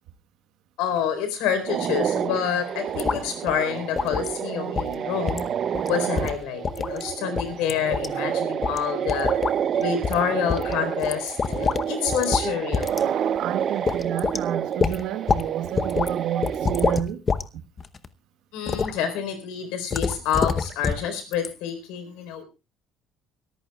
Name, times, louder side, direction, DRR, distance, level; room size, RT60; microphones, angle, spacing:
voice 1, 0.8-5.5 5.9-9.3 9.8-12.9 18.5-22.4, left 8 dB, 90° left, 4.1 m, -28 dB
sound 1, 1.7-17.0, right 8 dB, 45° right, 0.7 m, -29 dB
sound 2, 3.0-3.2 3.5-3.6 4.0-4.3 4.8-4.9 5.3-5.5 5.7-5.9 6.2-7.0 7.4-8.1 8.6-8.8 9.1-9.5 10.0-10.2 10.5-11.9 12.1-12.5 12.7-13.0 13.4-13.5 13.9-14.4 14.8-15.5 15.8-16.1 16.4-17.4 17.8-18.1 18.7-18.9 19.9-21.1 21.3-21.5, left 5 dB, 30° left, 0.8 m, -26 dB
voice 2, 12.9-17.2, right 10 dB, 75° right, 1.3 m, -31 dB
24.0 x 14.0 x 2.4 m
cardioid pair, 120°, 0 cm